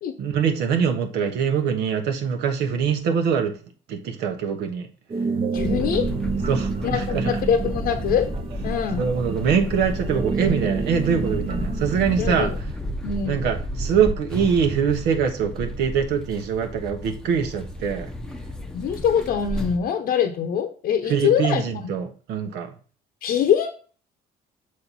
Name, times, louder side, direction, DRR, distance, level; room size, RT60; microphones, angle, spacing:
voice 1, 0.2-3.5 3.9-4.9 6.5-7.4 9.0-12.5 13.2-18.1 21.1-22.7, right 7 dB, 85° right, 5 dB, 1.2 m, -23 dB
sound 1, 5.1-12.6, right 5 dB, 35° right, 0.7 m, -30 dB
voice 2, 5.5-6.1 6.8-8.3 8.6-9.1 12.2-12.5 13.0-13.4 18.7-21.6 23.2-23.8, left 8 dB, 60° left, 4 dB, 0.8 m, -23 dB
sound 2, 5.6-19.8, equal, 5° left, 0.7 m, -31 dB
6.6 x 4.2 x 4.2 m, 0.40 s
cardioid pair, 110°, 17 cm